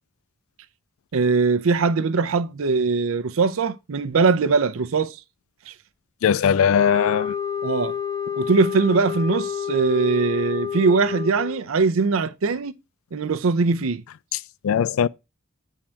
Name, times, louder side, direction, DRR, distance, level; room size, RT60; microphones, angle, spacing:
voice 1, 1.1-5.2 5.7-5.8 7.6-8.0 8.4-12.7 13.1-14.0, right 4 dB, 80° right, 0.5 m, -21 dB
voice 2, 6.2-7.3 14.6-15.1, left 7 dB, 85° left, 0.3 m, -19 dB
sound 1, 6.7-11.6, left 8 dB, 15° left, 0.8 m, -29 dB
8.6 x 3.7 x 4.3 m
head